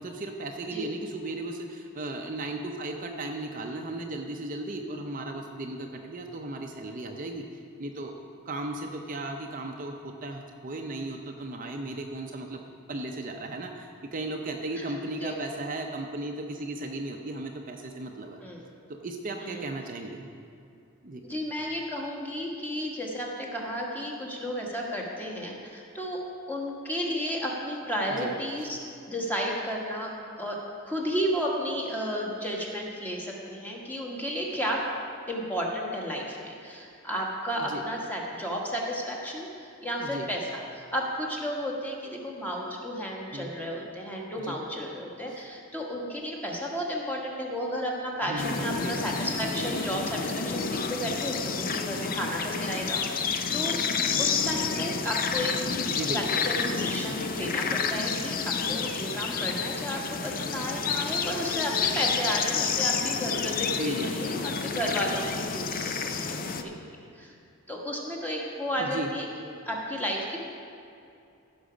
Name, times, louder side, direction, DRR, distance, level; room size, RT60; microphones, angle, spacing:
voice 1, 0.0-7.4 7.8-12.6 12.9-18.4 19.0-20.3 21.0-21.2 28.2-28.3 28.6-28.7 37.6-37.8 40.0-40.3 43.3-43.5 44.5-44.6 48.3-49.0 55.9-56.4 63.7-64.2 68.8-69.1, right 2 dB, 40° right, 2 dB, 0.6 m, -36 dB
voice 2, 21.2-26.2 26.5-28.8 29.1-30.6 30.8-34.8 35.3-53.0 53.5-53.8 54.2-55.5 56.1-66.7 67.1-67.3 67.7-69.3 69.7-70.5, equal, 10° left, -2 dB, 1.4 m, -32 dB
sound 1, 48.4-66.6, left 5 dB, 40° left, 0.5 m, -30 dB
15.5 x 6.1 x 5.0 m, 2.5 s
head